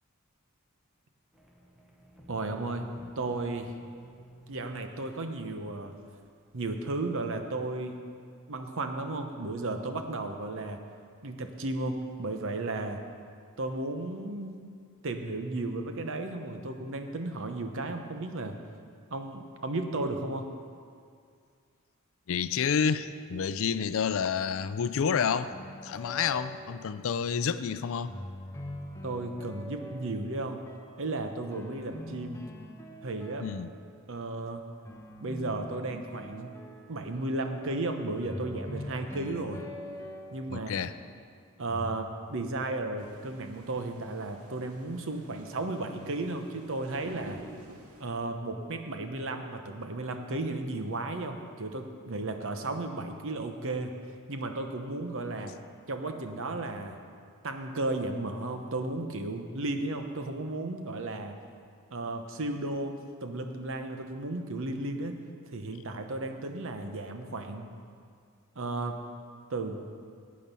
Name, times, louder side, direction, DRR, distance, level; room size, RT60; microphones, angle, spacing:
sound 1, 1.3-6.3, right 1 dB, 5° right, 1.0 m, -52 dB
voice 1, 2.3-3.7 4.5-6.0 6.5-8.0 8.5-10.8 11.2-13.0 13.6-14.6 15.0-18.6 19.1-20.5 29.0-30.6 31.0-32.4 33.0-33.5 34.1-34.6 35.2-36.6 36.9-39.6 40.3-40.8 41.6-47.4 48.0-53.9 54.3-55.5 55.9-57.0 57.4-61.4 61.9-65.2 65.5-67.7 68.6-69.0 69.5-69.8, right 2 dB, 60° right, 6 dB, 0.9 m, -34 dB
voice 2, 22.3-25.5 25.8-28.2 33.4-33.7 40.5-40.9, left 6 dB, 65° left, 13 dB, 0.4 m, -29 dB
sound 2, 25.5-27.5 28.1-31.0 31.5-34.2 34.8-41.2 41.7-42.0, left 1 dB, 15° left, 0.8 m, -44 dB
sound 3, 43.0-48.0, right 1 dB, 85° right, 1.2 m, -49 dB
11.5 x 8.7 x 5.4 m, 2.2 s
head